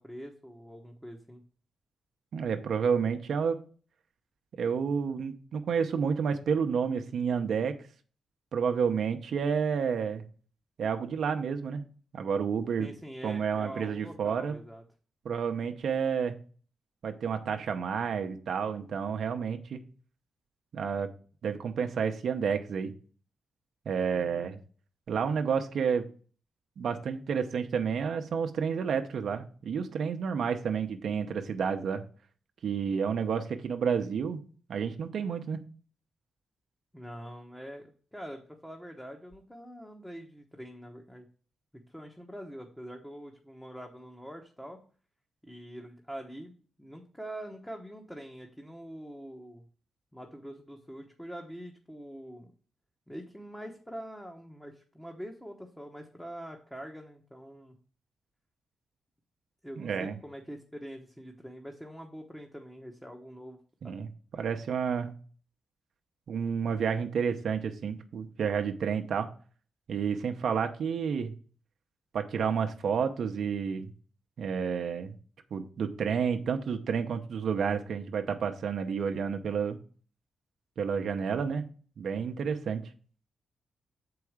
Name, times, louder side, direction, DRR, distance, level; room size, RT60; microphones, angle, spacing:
voice 1, 0.0-1.4 12.8-14.8 24.0-24.5 36.9-41.3 41.9-44.8 45.4-46.5 46.8-49.6 50.1-52.5 53.1-57.7 59.6-63.6 63.8-64.0, equal, 5° left, 2 dB, 1.1 m, -44 dB
voice 2, 2.3-3.6 4.6-7.7 8.5-10.2 10.8-11.8 12.1-12.9 13.2-14.5 15.2-16.4 17.0-19.8 20.7-21.1 21.4-22.9 23.9-24.6 25.1-26.1 26.8-32.0 32.6-34.4 34.7-35.6 59.8-60.2 63.8-64.1 64.4-65.1 66.3-69.3 69.9-71.3 72.1-73.9 74.4-75.1 75.5-79.8 80.8-81.6 82.0-82.8, right 6 dB, 70° right, 6 dB, 0.7 m, -30 dB
6.9 x 4.8 x 4.8 m, 0.41 s
cardioid pair, 90°, 0 cm